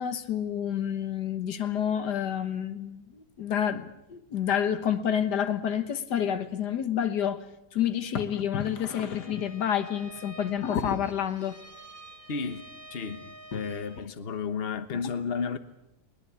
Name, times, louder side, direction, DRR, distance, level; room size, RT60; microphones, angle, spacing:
voice 1, 0.0-7.4 7.7-11.6 13.5-13.6, left 9 dB, 90° left, 1.9 m, -29 dB
Bowed string instrument, 8.8-14.1, right 2 dB, 30° right, 1.9 m, -49 dB
voice 2, 12.3-12.6 12.9-15.6, left 5 dB, 40° left, 1.3 m, -32 dB
21.5 x 20.5 x 8.5 m
omnidirectional pair, 1.7 m